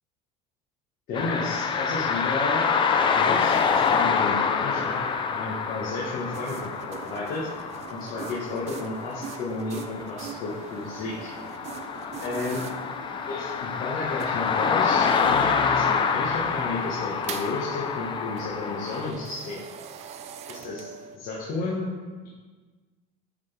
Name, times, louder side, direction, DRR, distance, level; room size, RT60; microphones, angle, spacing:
voice 1, 1.1-2.7 3.1-3.5 3.9-5.0 5.3-7.5 7.9-11.3 12.2-12.6 13.3-15.8 16.1-19.6 20.5-21.9, left 3 dB, 50° left, -5 dB, 1.2 m, -32 dB
sound 1, 1.1-19.1, left 6 dB, 25° left, 0.4 m, -27 dB
sound 2, 6.3-21.2, right 7 dB, 35° right, 0.4 m, -42 dB
8.7 x 3.9 x 3.4 m, 1.4 s
cardioid pair, 135°, 18 cm